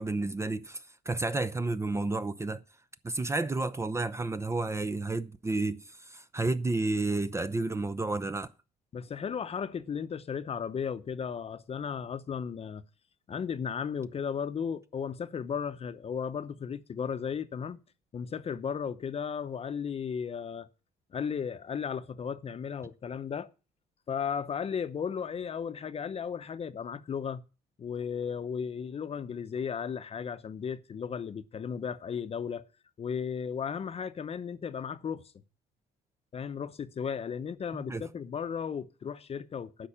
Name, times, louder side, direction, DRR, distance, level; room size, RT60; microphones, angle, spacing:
voice 1, 0.0-2.6 3.0-8.5 37.9-38.1, right 3 dB, 15° right, 0.6 m, -31 dB
voice 2, 8.9-12.8 13.3-17.8 18.1-20.7 21.1-23.5 24.1-27.4 27.8-32.6 33.0-35.3 36.3-39.9, left 7 dB, 35° left, 0.8 m, -35 dB
10.0 x 6.0 x 8.6 m
cardioid pair, 110°, 17 cm